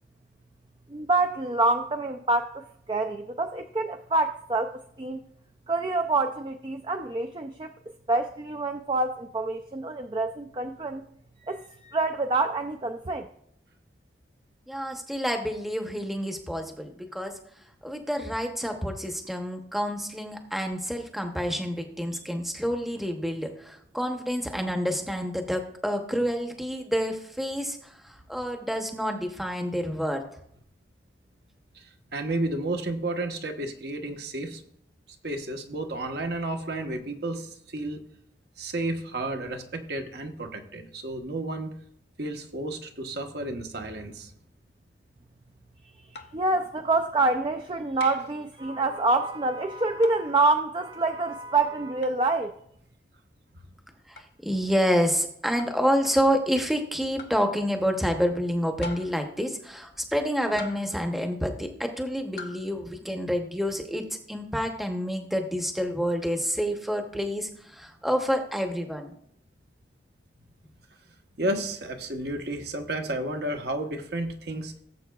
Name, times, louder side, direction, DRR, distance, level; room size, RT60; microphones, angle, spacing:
voice 1, 0.9-5.2 5.7-7.7 8.1-11.1 11.4-13.3 46.3-52.5, right 2 dB, 25° right, 0.4 m, -26 dB
voice 2, 14.7-17.4 17.8-30.2 54.1-69.1, equal, ahead, 0.8 m, -28 dB
voice 3, 31.7-34.6 35.2-38.0 38.6-41.7 42.2-44.3 71.4-74.7, right 1 dB, 70° right, 1.1 m, -32 dB
sound 1, 46.1-46.5 48.0-48.4 50.0-50.3 52.0-52.2 54.2-54.3 55.6-55.9 57.2-57.5 58.8-59.3 60.6-61.0 62.4-62.7, left 3 dB, 75° left, 0.6 m, -42 dB
17.5 x 7.5 x 2.3 m
head